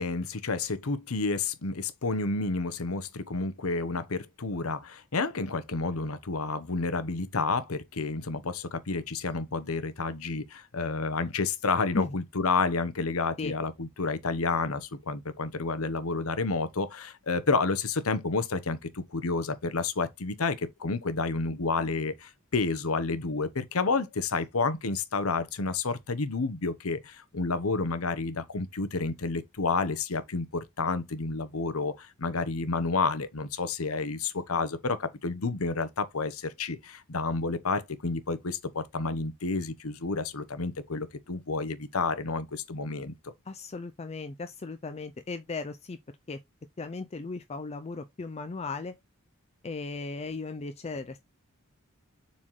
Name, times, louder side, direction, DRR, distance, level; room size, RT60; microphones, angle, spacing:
voice 1, 0.0-43.3, left 3 dB, 80° left, 1.0 m, -30 dB
voice 2, 43.5-46.0 46.3-46.4 46.8-49.0 49.6-51.2, left 3 dB, 30° left, 0.4 m, -36 dB
7.3 x 4.2 x 3.1 m
head